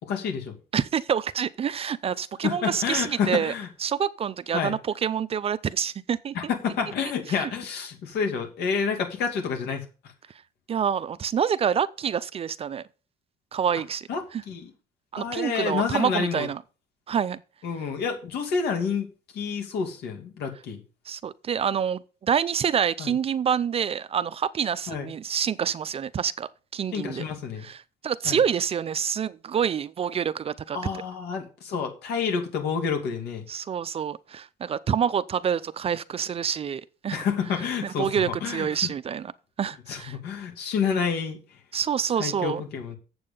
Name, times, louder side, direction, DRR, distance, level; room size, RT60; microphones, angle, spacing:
voice 1, 0.0-0.6 2.4-3.7 4.5-4.7 6.3-9.8 14.1-14.7 15.2-16.5 17.6-19.1 19.3-20.8 23.0-23.1 24.9-25.1 26.9-27.7 28.2-28.4 30.7-33.4 37.1-38.7 39.9-41.6 42.2-43.0, left 6 dB, 75° left, 2.6 m, -29 dB
voice 2, 0.7-3.5 3.8-6.3 7.4-7.5 10.7-12.9 13.5-14.4 15.1-16.6 17.1-17.4 21.1-27.2 27.6-27.8 28.0-30.8 33.5-37.2 37.8-39.3 39.6-40.2 41.7-42.6, right 8 dB, 35° right, 0.5 m, -27 dB
7.6 x 7.1 x 5.5 m
cardioid pair, 110°, 17 cm